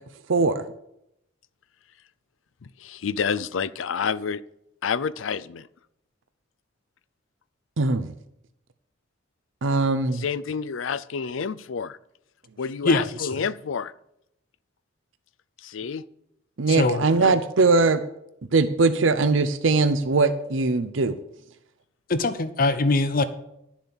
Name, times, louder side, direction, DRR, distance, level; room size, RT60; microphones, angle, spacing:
voice 1, 0.3-0.6 7.8-8.1 9.6-10.2 16.6-18.0 18.5-21.2, right 3 dB, 85° right, 11 dB, 0.7 m, -21 dB
voice 2, 2.6-4.4 4.8-5.7 10.1-12.0 12.6-13.9 15.6-16.0 16.8-17.4, left 6 dB, 90° left, 17 dB, 0.5 m, -29 dB
voice 3, 12.8-13.4 16.7-17.0 22.1-23.2, left 3 dB, 45° left, 12 dB, 0.7 m, -23 dB
11.5 x 7.2 x 7.1 m, 0.79 s
head